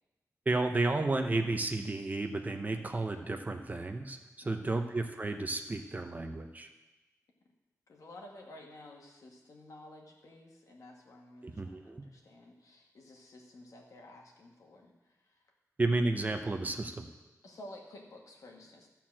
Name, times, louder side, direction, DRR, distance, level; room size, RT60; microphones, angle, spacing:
voice 1, 0.5-4.2 4.4-6.7 11.4-12.0 15.8-17.1, right 2 dB, 30° right, 5 dB, 0.8 m, -32 dB
voice 2, 7.9-14.9 15.2-15.4 17.4-18.9, left 1 dB, 70° left, 0 dB, 1.8 m, -52 dB
13.0 x 4.5 x 7.5 m, 1.1 s
wide cardioid pair, 125°, 6 cm